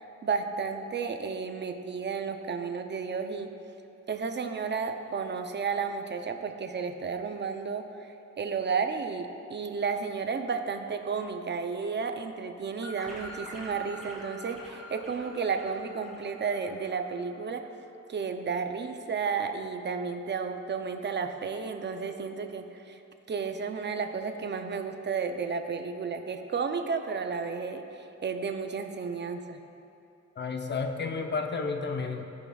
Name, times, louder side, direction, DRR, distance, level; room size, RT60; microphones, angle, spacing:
voice 1, 0.0-3.5 4.1-7.8 8.4-17.6 18.1-23.0 23.3-27.8 28.2-29.6, right 5 dB, 40° right, 6 dB, 0.5 m, -32 dB
sound 1, 12.8-17.2, right 1 dB, ahead, 1.8 m, -45 dB
voice 2, 30.4-32.2, left 4 dB, 40° left, 4 dB, 0.6 m, -31 dB
14.5 x 5.7 x 2.3 m, 2.9 s
wide cardioid pair, 130°, 29 cm